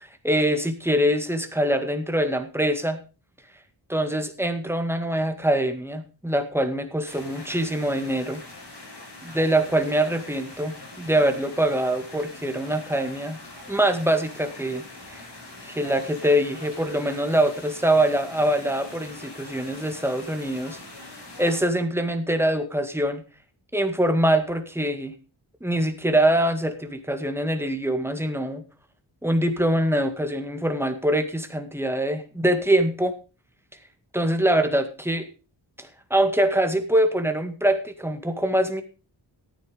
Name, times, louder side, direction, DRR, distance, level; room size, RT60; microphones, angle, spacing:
voice 1, 0.0-3.0 3.9-8.4 9.2-13.4 13.7-15.2 15.6-20.8 21.4-23.2 23.7-25.1 25.6-28.6 29.2-33.1 34.1-35.3 35.8-38.8, right 1 dB, 5° right, 7 dB, 2.0 m, -24 dB
sound 1, 7.1-21.6, left 2 dB, 60° left, 5.6 m, -43 dB
13.5 x 9.2 x 5.2 m, 0.34 s
cardioid pair, 65°, 45 cm